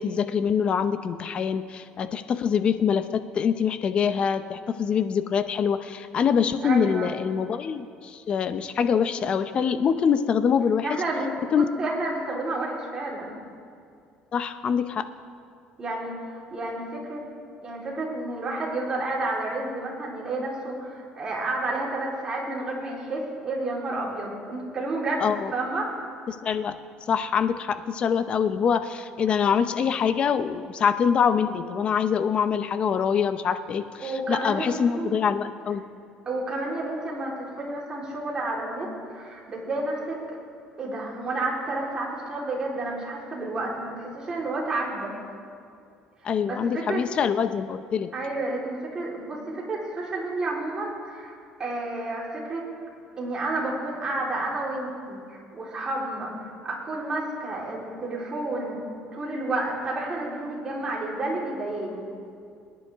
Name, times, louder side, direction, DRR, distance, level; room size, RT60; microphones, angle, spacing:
voice 1, 0.0-11.0 11.5-11.6 14.3-15.1 25.2-25.5 26.3-26.7 27.1-35.8 46.2-48.1, left 7 dB, 40° left, 11 dB, 0.7 m, -24 dB
voice 2, 6.6-7.1 10.8-13.3 15.8-17.2 17.6-25.9 34.0-35.1 36.3-40.4 40.8-45.1 46.5-47.0 48.1-51.3 51.6-52.6 53.2-56.3 56.6-58.8 59.1-62.1, right 2 dB, 30° right, -4 dB, 3.9 m, -30 dB
23.5 x 10.5 x 3.6 m, 2.4 s
cardioid pair, 120°, 3 cm